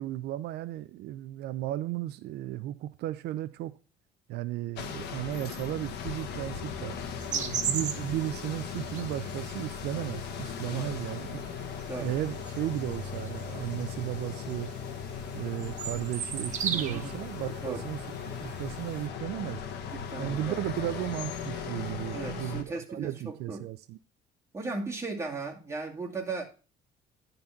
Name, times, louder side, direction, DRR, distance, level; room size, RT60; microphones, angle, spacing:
voice 1, 0.0-3.7 4.3-7.0 7.7-11.4 12.0-14.7 15.3-18.0 18.3-19.6 20.2-24.0, right 14 dB, 75° right, 0.5 m, -35 dB
sound 1, 4.8-22.6, left 7 dB, 75° left, 1.4 m, -38 dB
sound 2, 7.2-19.1, right 7 dB, 45° right, 1.2 m, -39 dB
voice 2, 7.3-7.6 10.7-10.9 11.9-12.1 16.7-17.2 17.6-17.9 19.9-20.6 22.1-23.7 24.5-26.4, right 3 dB, 15° right, 2.2 m, -37 dB
11.0 x 4.0 x 5.7 m
cardioid pair, 110°, 17 cm